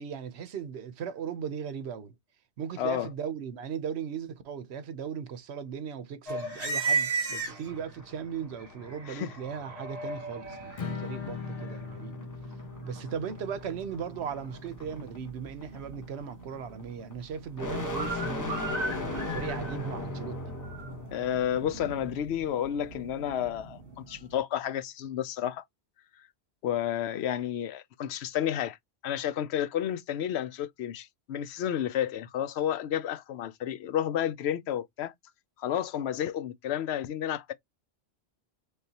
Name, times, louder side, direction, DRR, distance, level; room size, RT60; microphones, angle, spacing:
voice 1, 0.0-2.1 2.6-12.2 12.8-18.6 19.1-20.4, right 7 dB, 85° right, 1.0 m, -37 dB
voice 2, 2.8-3.1 9.1-9.3 21.1-25.6 26.6-28.8 29.0-35.1 35.6-37.5, left 10 dB, 85° left, 0.9 m, -31 dB
sound 1, 6.3-8.0 8.6-24.4, right 3 dB, 60° right, 1.8 m, -38 dB
sound 2, 7.6-21.2, left 2 dB, 20° left, 1.0 m, -39 dB
Strum, 10.8-17.0, left 5 dB, 50° left, 0.4 m, -42 dB
4.1 x 3.5 x 2.8 m
omnidirectional pair, 1.1 m